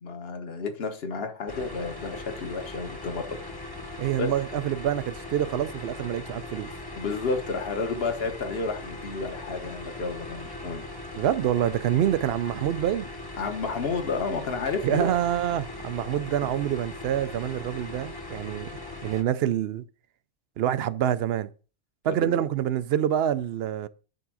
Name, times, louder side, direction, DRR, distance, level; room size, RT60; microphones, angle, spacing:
voice 1, 0.0-3.2 4.2-4.3 7.0-10.8 13.4-15.1 22.2-22.4, left 4 dB, 55° left, 1.4 m, -31 dB
sound 1, 1.5-19.2, left 2 dB, 20° left, 1.0 m, -39 dB
voice 2, 4.0-6.7 11.1-13.1 14.8-18.7 19.0-19.8 20.6-21.5 22.0-23.9, right 10 dB, 65° right, 0.7 m, -26 dB
10.5 x 3.6 x 6.1 m
omnidirectional pair, 1.3 m